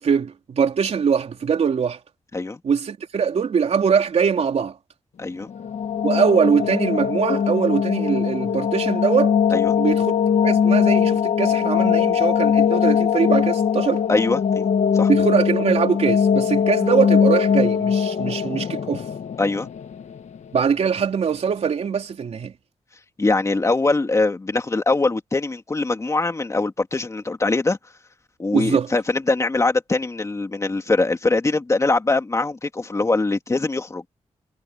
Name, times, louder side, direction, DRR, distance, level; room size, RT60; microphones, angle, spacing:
voice 1, 0.0-2.0 2.6-4.8 6.0-9.4 9.8-10.1 10.4-14.0 15.1-19.1 20.5-22.5 28.5-28.9, right 6 dB, 60° right, 3.7 m, -22 dB
sound 1, 5.4-20.4, left 7 dB, 70° left, 1.5 m, -21 dB
voice 2, 14.1-14.7 14.9-15.1 19.4-19.7 23.2-27.8 28.4-34.0, left 3 dB, 25° left, 2.7 m, -22 dB
wide cardioid pair, 135°, 12 cm